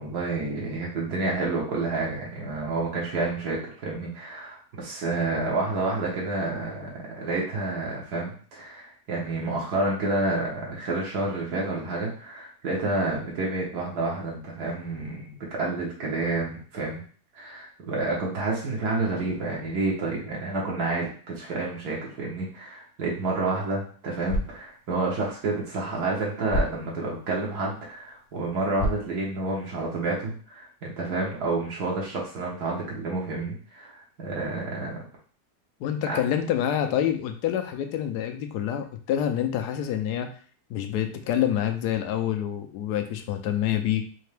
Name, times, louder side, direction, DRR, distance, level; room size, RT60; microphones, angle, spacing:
voice 1, 0.0-17.0 17.3-35.0 36.1-36.2, right 2 dB, 75° right, -3 dB, 1.5 m, -29 dB
sound 1, 24.1-30.1, left 1 dB, 45° left, 0.9 m, -35 dB
voice 2, 35.8-40.3 40.7-44.0, left 10 dB, 75° left, 7 dB, 1.1 m, -27 dB
4.3 x 2.8 x 3.3 m, 0.44 s
omnidirectional pair, 1.8 m